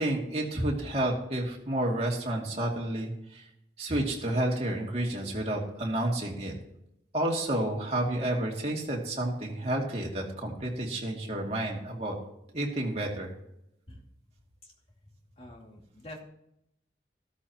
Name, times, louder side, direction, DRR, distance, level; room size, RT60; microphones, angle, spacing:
voice 1, 0.0-3.4 3.8-6.5 7.1-12.1 12.5-13.3, right 1 dB, 35° right, -1 dB, 2.6 m, -30 dB
voice 2, 15.3-16.2, left 1 dB, 35° left, 0 dB, 2.5 m, -47 dB
14.5 x 13.0 x 3.0 m, 0.79 s
head